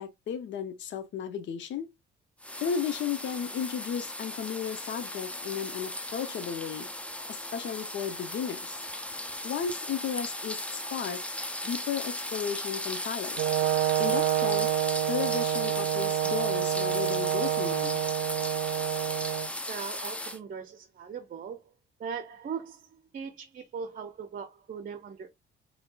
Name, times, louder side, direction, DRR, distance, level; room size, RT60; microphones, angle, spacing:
voice 1, 0.0-1.9 2.6-6.9 7.3-8.8 9.4-11.2 11.6-13.4 14.0-14.7 15.1-18.0, left 8 dB, 70° left, 0.7 m, -34 dB
sound 1, 2.4-20.4, left 1 dB, 5° left, 0.5 m, -37 dB
Brass instrument, 13.4-19.5, right 14 dB, 90° right, 0.5 m, -28 dB
voice 2, 19.7-21.6 22.0-25.3, right 6 dB, 45° right, 0.6 m, -39 dB
4.3 x 2.8 x 2.3 m
cardioid pair, 90°, 20 cm